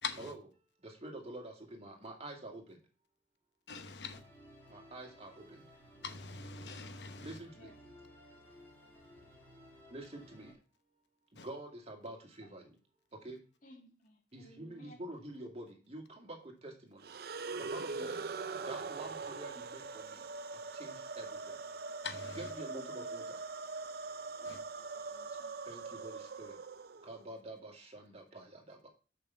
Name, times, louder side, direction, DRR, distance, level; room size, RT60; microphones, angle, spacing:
voice 1, 0.0-0.3 3.7-4.2 6.0-7.4 11.4-11.5 22.0-22.5 24.4-24.6, left 5 dB, 75° left, 0.9 m, -43 dB
voice 2, 0.8-2.8 4.7-5.7 7.2-7.7 9.9-10.5 11.3-12.8 13.2-13.4 14.3-17.2 17.6-18.1 18.6-20.2 20.5-21.6 22.4-23.4 25.7-26.6 27.0-28.9, right 1 dB, 35° right, 2.3 m, -47 dB
Musical instrument, 4.1-10.5, equal, 15° left, 3.1 m, -57 dB
voice 3, 13.6-15.0 17.9-18.2 22.5-23.1 24.4-25.5, left 1 dB, 45° left, 2.1 m, -56 dB
sound 1, 17.0-27.2, right 4 dB, 55° right, 0.6 m, -42 dB
6.9 x 5.9 x 6.9 m
head